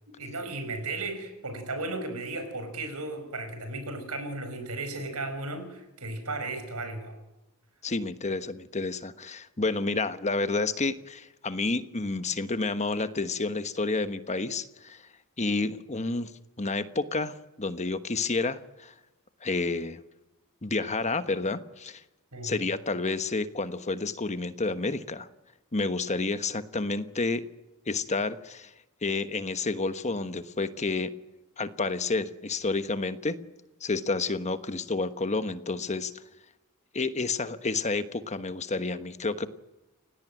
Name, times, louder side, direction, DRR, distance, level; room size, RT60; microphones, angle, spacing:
voice 1, 0.2-7.2 22.3-22.6, right 2 dB, 80° right, 9 dB, 5.8 m, -35 dB
voice 2, 7.8-15.0 15.4-16.3 16.6-18.9 19.4-20.0 20.6-22.0 22.4-25.3 25.7-27.4 27.9-28.7 29.0-31.1 31.6-33.4 33.8-36.1 36.9-39.5, left 3 dB, 30° left, 11 dB, 1.2 m, -30 dB
29.5 x 17.5 x 9.2 m, 0.99 s
head